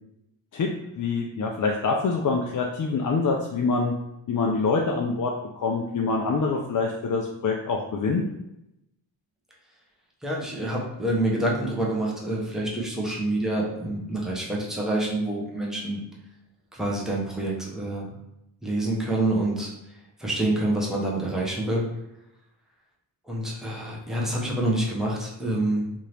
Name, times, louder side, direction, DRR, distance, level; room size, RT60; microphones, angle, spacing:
voice 1, 0.5-3.9 4.3-8.2, left 4 dB, 40° left, 0 dB, 0.4 m, -25 dB
voice 2, 10.2-16.0 16.7-18.2 18.6-19.7 20.2-21.9 23.3-25.9, right 1 dB, ahead, -4 dB, 0.9 m, -27 dB
2.8 x 2.6 x 3.2 m, 0.87 s
cardioid pair, 65°, 50 cm